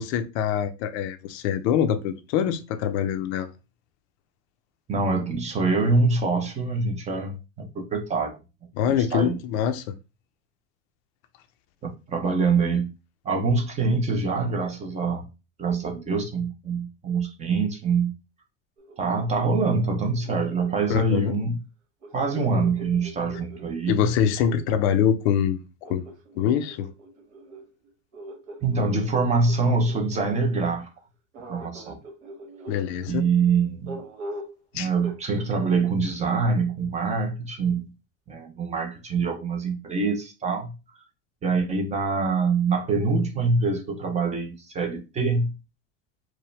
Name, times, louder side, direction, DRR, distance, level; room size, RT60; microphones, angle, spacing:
voice 1, 0.0-3.5 8.8-9.9 20.9-21.3 23.9-26.1 26.4-26.9 32.7-33.3 34.7-34.9, left 8 dB, 65° left, 0.6 m, -24 dB
voice 2, 4.9-8.4 9.1-9.4 11.8-12.9 13.2-15.2 15.6-18.1 19.0-21.6 22.1-24.1 28.6-30.9 31.5-32.0 33.1-34.0 34.7-37.8 38.3-40.7 41.4-45.5, right 4 dB, 20° right, 0.6 m, -25 dB
sound 1, 18.8-21.2 22.0-25.0 25.8-30.6 31.3-33.1 33.9-34.6 35.0-35.5, right 1 dB, 70° right, 1.6 m, -43 dB
4.7 x 2.2 x 3.2 m
supercardioid pair, 155°, 35 cm